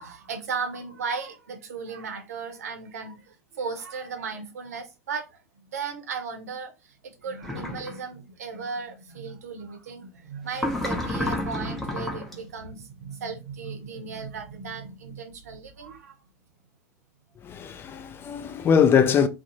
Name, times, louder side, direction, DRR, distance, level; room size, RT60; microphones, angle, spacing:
voice 1, 0.0-5.3 5.6-6.9 7.2-16.2, right 5 dB, 70° right, 0.6 m, -36 dB
sound 1, 7.4-7.9 10.5-12.3, left 1 dB, 5° left, 0.7 m, -30 dB
voice 2, 17.4-19.3, left 7 dB, 25° left, 0.3 m, -21 dB
2.4 x 2.0 x 2.8 m
figure-of-eight pair, 85°, 9 cm